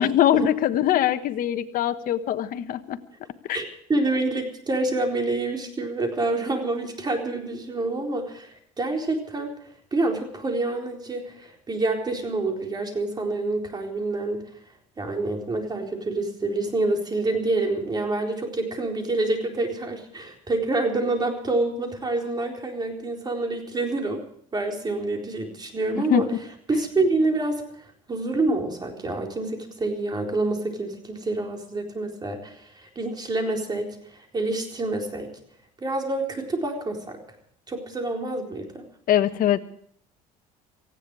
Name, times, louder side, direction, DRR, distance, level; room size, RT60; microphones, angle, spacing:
voice 1, 0.0-3.0 3.5-3.6 26.1-26.2 39.1-39.6, left 11 dB, 55° left, 10 dB, 1.2 m, -22 dB
voice 2, 3.5-9.5 9.9-14.5 15.0-24.2 24.5-26.3 26.7-27.6 28.1-35.3 35.8-37.2 37.7-38.9, right 2 dB, 25° right, 2 dB, 4.2 m, -27 dB
18.5 x 15.5 x 4.9 m, 0.65 s
cardioid pair, 110°, 17 cm